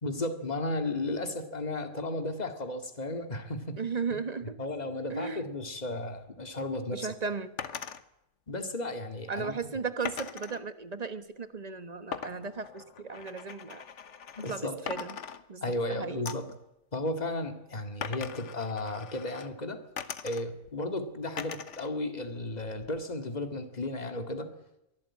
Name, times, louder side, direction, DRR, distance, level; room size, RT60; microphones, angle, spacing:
voice 1, 0.0-3.8 4.6-7.1 8.5-9.5 14.4-14.8 15.6-16.5 16.9-19.8 20.2-24.5, left 2 dB, 30° left, 6 dB, 2.2 m, -34 dB
voice 2, 3.8-4.6 5.1-5.4 6.9-7.5 9.3-13.8 14.5-15.2 15.5-15.6 15.9-16.3, right 5 dB, 30° right, 11 dB, 1.2 m, -36 dB
sound 1, 7.6-8.0 10.0-10.6 12.1-14.6 14.9-15.8 16.3-16.6 18.0-19.5 20.0-20.7 21.4-21.9 22.3-23.0, left 7 dB, 55° left, 1.4 m, -40 dB
23.0 x 16.0 x 8.7 m, 0.86 s
omnidirectional pair, 1.6 m